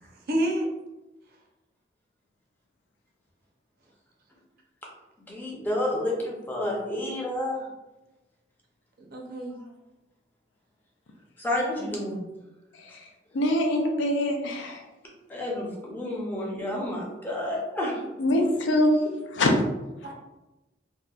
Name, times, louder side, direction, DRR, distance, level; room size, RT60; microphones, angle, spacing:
voice 1, 0.0-0.7 9.0-9.6 11.8-11.9 20.0-20.1, right 1 dB, 55° right, 1 dB, 0.5 m, -30 dB
voice 2, 5.3-7.7 11.4-12.2 15.3-18.0, left 1 dB, 10° left, -3 dB, 0.5 m, -30 dB
voice 3, 12.7-13.1 13.3-14.8 18.2-19.0 19.3-19.6, left 1 dB, 80° left, 3 dB, 0.4 m, -24 dB
2.7 x 2.1 x 2.3 m, 1.0 s
head